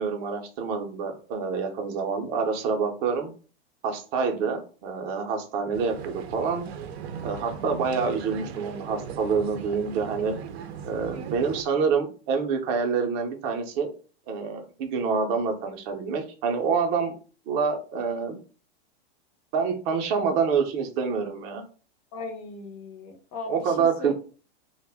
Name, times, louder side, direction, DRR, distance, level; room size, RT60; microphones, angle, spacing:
voice 1, 0.0-3.3 3.8-6.7 7.2-10.4 10.9-13.9 14.3-17.1 17.5-18.4 19.5-21.6 23.5-24.1, right 5 dB, 30° right, 4 dB, 0.5 m, -27 dB
sound 1, 5.7-11.6, right 7 dB, 80° right, 0.5 m, -38 dB
voice 2, 22.1-24.1, left 3 dB, 25° left, 5 dB, 0.4 m, -38 dB
2.4 x 2.1 x 3.3 m, 0.38 s
supercardioid pair, 145°, 32 cm